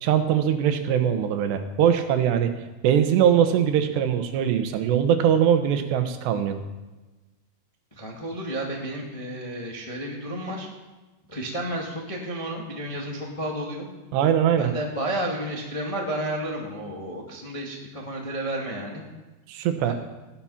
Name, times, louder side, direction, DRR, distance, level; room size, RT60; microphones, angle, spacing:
voice 1, 0.0-2.5 2.8-6.6 14.1-14.7 19.5-19.9, right 9 dB, 80° right, 8 dB, 3.2 m, -21 dB
voice 2, 7.9-10.7 11.3-13.9 14.5-19.0 19.8-19.9, right 1 dB, 30° left, -2 dB, 0.6 m, -31 dB
15.5 x 12.0 x 5.8 m, 1.2 s
omnidirectional pair, 4.9 m